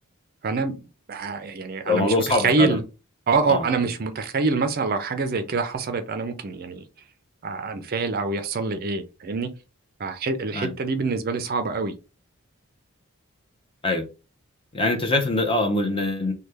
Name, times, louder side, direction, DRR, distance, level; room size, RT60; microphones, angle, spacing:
voice 1, 0.4-2.8 3.3-6.8 7.4-9.5 10.0-11.9, right 4 dB, 45° right, 0.4 m, -25 dB
voice 2, 1.9-2.8 3.5-3.7 10.5-10.7 13.8-14.1 14.7-16.3, left 2 dB, 25° left, 0.6 m, -23 dB
3.2 x 2.2 x 3.3 m
head